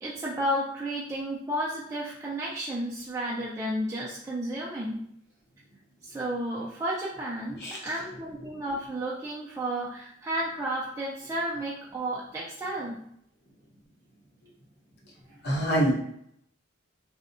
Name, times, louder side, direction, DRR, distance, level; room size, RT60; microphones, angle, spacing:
voice 1, 0.0-5.0 6.0-13.0, right 1 dB, 15° right, -6 dB, 0.3 m, -32 dB
voice 2, 15.4-15.9, right 1 dB, 55° left, -4 dB, 0.8 m, -25 dB
2.6 x 2.1 x 2.5 m, 0.69 s
head